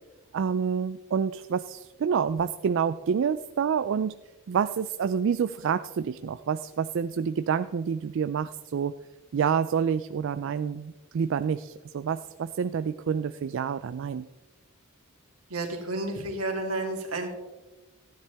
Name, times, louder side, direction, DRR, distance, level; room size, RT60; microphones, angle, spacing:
voice 1, 0.3-4.1 4.5-8.9 9.3-14.3, right 7 dB, 60° right, 12 dB, 0.3 m, -28 dB
voice 2, 15.5-17.3, right 2 dB, 85° right, 1 dB, 2.6 m, -31 dB
15.0 x 10.0 x 3.4 m, 1.1 s
head